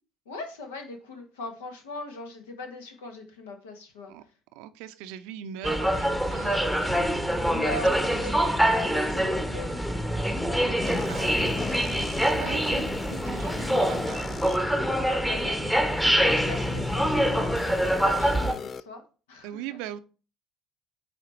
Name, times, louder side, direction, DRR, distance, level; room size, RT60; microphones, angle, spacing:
voice 1, 0.3-4.1 7.5-8.4 8.7-9.8 15.2-15.8 16.2-19.0 19.3-19.6, left 2 dB, 75° left, 1.2 m, -40 dB
voice 2, 4.6-7.3 7.7-7.8 8.1-8.6 10.6-12.0 12.3-14.4 15.4-15.8 19.4-20.0, right 11 dB, 65° right, 0.5 m, -41 dB
sound 1, 5.6-18.5, equal, 5° left, 1.0 m, -25 dB
sound 2, 10.8-14.6 15.3-15.4 16.3-18.8, left 5 dB, 35° left, 0.4 m, -37 dB
8.7 x 2.9 x 4.2 m
figure-of-eight pair, 55°, 0 cm